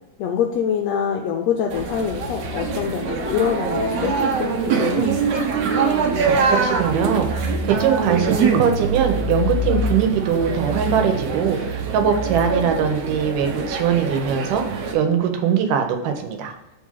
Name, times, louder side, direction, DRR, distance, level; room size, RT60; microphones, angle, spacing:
voice 1, 0.2-5.1, left 8 dB, 80° left, 2 dB, 1.5 m, -25 dB
sound 1, 1.7-14.9, right 4 dB, 65° right, 1.7 m, -23 dB
voice 2, 6.0-14.6 14.9-16.6, right 7 dB, 80° right, 5 dB, 2.4 m, -21 dB
6.8 x 3.7 x 5.6 m, 0.98 s
omnidirectional pair, 3.7 m